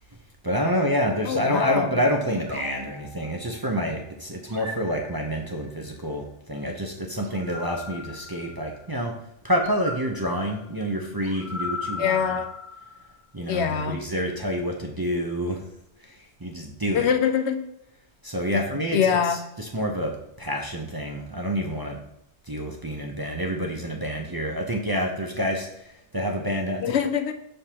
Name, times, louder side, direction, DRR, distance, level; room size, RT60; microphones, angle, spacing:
voice 1, 0.4-9.1 9.4-12.3 13.3-15.6 16.0-17.1 18.2-20.1 20.4-22.0 22.5-26.9, equal, 25° right, 0 dB, 0.6 m, -28 dB
voice 2, 1.3-1.9 12.0-12.5 13.5-14.0 16.9-17.6 18.5-18.6 18.9-19.4 26.8-27.3, left 7 dB, 75° left, 7 dB, 0.9 m, -23 dB
sound 1, 2.5-3.8 4.5-5.7 7.2-9.0 9.6-13.1, left 3 dB, 75° right, 1.5 m, -38 dB
6.5 x 5.5 x 2.9 m, 0.81 s
omnidirectional pair, 1.1 m